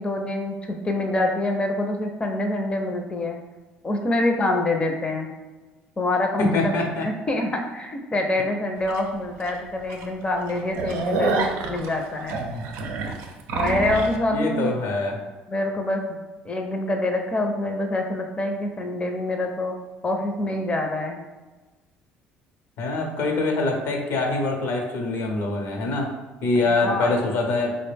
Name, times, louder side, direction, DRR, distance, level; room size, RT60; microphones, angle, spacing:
voice 1, 0.0-3.4 3.8-5.3 6.0-6.8 7.0-11.3 11.7-12.4 13.5-14.7 15.5-16.2 16.4-19.8 20.0-21.2 26.7-27.1, left 2 dB, 25° left, 3 dB, 0.5 m, -26 dB
voice 2, 6.4-7.1 14.3-15.2 22.8-26.1 26.4-27.8, left 2 dB, 75° left, 2 dB, 0.7 m, -24 dB
sound 1, 8.9-9.0 9.5-9.6 9.9-10.0 10.4-14.2, right 3 dB, 75° right, 0.5 m, -27 dB
3.9 x 2.1 x 3.3 m, 1.2 s
supercardioid pair, 75°, 4 cm